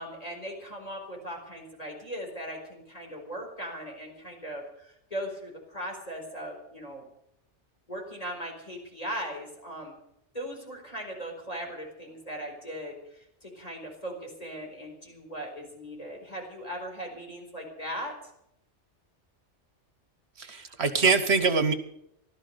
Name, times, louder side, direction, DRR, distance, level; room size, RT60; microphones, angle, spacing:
voice 1, 0.0-7.1 7.9-10.0 10.3-18.1, equal, 30° left, 0 dB, 4.8 m, -39 dB
voice 2, 20.4-21.7, right 4 dB, 65° right, 10 dB, 1.4 m, -24 dB
16.0 x 12.5 x 6.8 m, 0.78 s
omnidirectional pair, 1.2 m